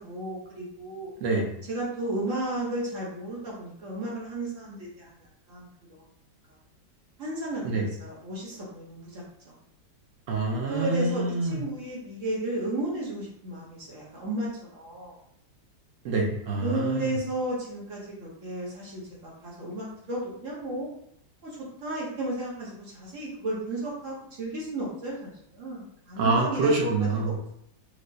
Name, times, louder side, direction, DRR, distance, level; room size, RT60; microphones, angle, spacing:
voice 1, 0.0-1.1 1.7-5.1 5.5-5.7 7.2-9.5 10.7-15.1 16.6-20.9 21.4-27.5, right 1 dB, 55° right, -5 dB, 1.0 m, -34 dB
voice 2, 1.2-1.5 7.6-7.9 10.3-11.6 16.0-17.1 26.2-27.3, right 3 dB, 75° right, -1 dB, 0.7 m, -26 dB
4.6 x 2.0 x 2.6 m, 0.72 s
omnidirectional pair, 2.0 m